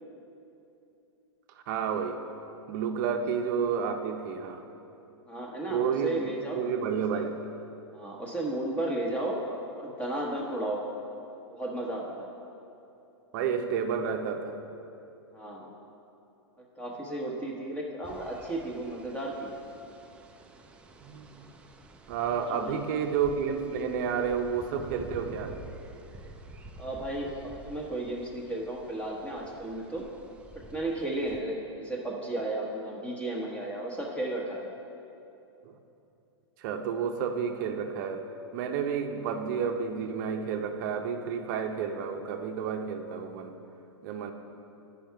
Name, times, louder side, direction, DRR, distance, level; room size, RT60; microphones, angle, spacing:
voice 1, 1.7-2.2 2.7-4.6 5.7-6.2 6.5-7.3 13.3-14.5 21.0-21.5 22.1-25.6 35.6-35.7 36.6-38.3 38.5-43.5 44.0-44.3, right 6 dB, 45° right, 5 dB, 0.6 m, -30 dB
voice 2, 5.3-6.6 7.1-7.2 7.9-10.8 11.5-12.3 15.3-15.7 16.8-19.5 22.4-22.8 26.8-30.1 30.5-34.7, right 1 dB, 10° left, -2 dB, 1.1 m, -34 dB
sound 1, 18.0-31.4, right 2 dB, 10° right, 0.3 m, -49 dB
8.9 x 5.7 x 4.6 m, 2.8 s
hypercardioid pair, 140°, 14 cm